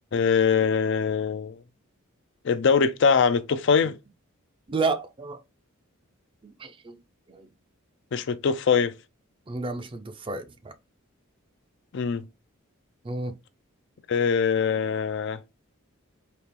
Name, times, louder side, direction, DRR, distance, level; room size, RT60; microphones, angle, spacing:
voice 1, 0.1-1.6 2.4-3.9 8.1-8.9 11.9-12.2 14.1-15.4, left 6 dB, 55° left, 0.4 m, -22 dB
voice 2, 4.7-5.4 6.4-7.0 7.3-7.5 9.5-10.7 13.0-13.3, right 3 dB, 25° right, 0.5 m, -31 dB
4.2 x 2.8 x 3.7 m
head